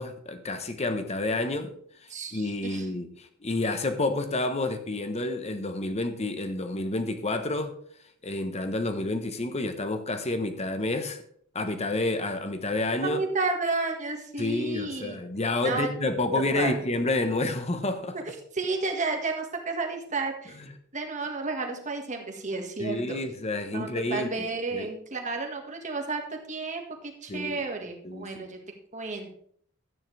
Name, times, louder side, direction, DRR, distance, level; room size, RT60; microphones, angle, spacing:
voice 1, 0.0-1.7 2.0-7.7 8.2-11.2 11.5-13.2 14.4-18.2 20.6-20.7 22.8-24.9 27.3-27.6 28.0-28.5, left 2 dB, 30° left, 1.1 m, -29 dB
voice 2, 2.1-2.9 13.0-15.2 15.6-15.9 16.5-16.7 18.1-18.2 18.5-20.6 20.9-23.2 23.7-28.6 28.9-29.4, right 3 dB, 35° right, 1.8 m, -32 dB
12.5 x 9.4 x 3.4 m
head